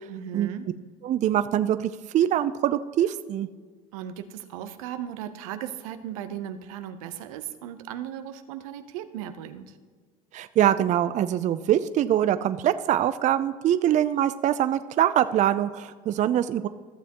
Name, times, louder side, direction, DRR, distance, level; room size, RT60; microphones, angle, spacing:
voice 1, 0.1-0.7 3.9-9.7, right 10 dB, 85° right, 9 dB, 0.7 m, -37 dB
voice 2, 1.0-3.5 10.3-16.7, right 11 dB, 45° right, 12 dB, 0.4 m, -23 dB
14.5 x 7.0 x 2.9 m, 1.5 s
supercardioid pair, 85°, 17 cm